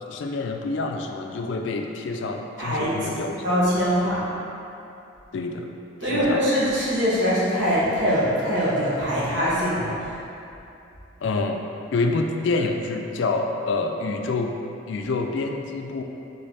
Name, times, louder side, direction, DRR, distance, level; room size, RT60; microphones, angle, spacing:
voice 1, 0.1-3.6 5.3-5.7 6.0-6.4 11.2-11.6 11.9-14.5 14.9-16.0, left 3 dB, 65° left, 3 dB, 0.3 m, -27 dB
voice 2, 2.6-3.1 3.4-4.2 6.0-10.1, equal, 60° right, -9 dB, 1.3 m, -23 dB
3.9 x 3.2 x 4.0 m, 2.8 s
head